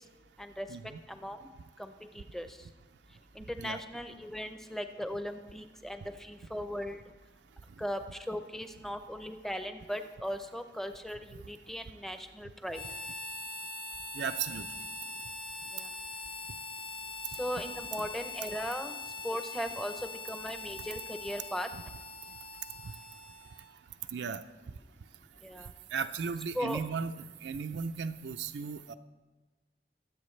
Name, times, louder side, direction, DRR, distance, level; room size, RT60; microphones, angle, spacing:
voice 1, 1.8-2.5 3.4-7.0 7.8-8.0 8.3-12.8 15.7-15.9 17.4-21.7 25.4-25.7 26.5-26.8, equal, ahead, 8 dB, 0.6 m, -38 dB
Harmonica, 12.7-23.8, left 3 dB, 25° left, 1.0 m, -42 dB
voice 2, 14.2-14.7 24.1-24.4 25.9-28.9, right 6 dB, 80° right, 8 dB, 0.5 m, -35 dB
23.5 x 8.0 x 3.2 m, 1.2 s
head